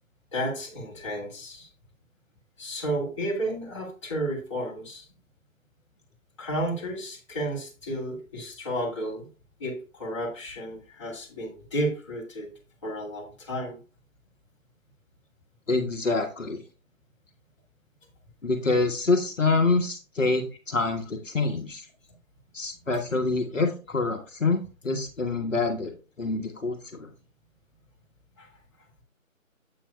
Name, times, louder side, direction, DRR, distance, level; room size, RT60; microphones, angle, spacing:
voice 1, 0.3-1.7 2.6-5.1 6.4-9.3 9.6-12.5 12.8-13.8 28.4-28.5, right 1 dB, 20° left, -4 dB, 2.0 m, -32 dB
voice 2, 15.7-16.6 18.4-21.8 22.5-25.9 26.2-27.1, left 3 dB, 65° left, 4 dB, 1.3 m, -26 dB
8.8 x 7.7 x 2.2 m, 0.34 s
figure-of-eight pair, 160°, 41 cm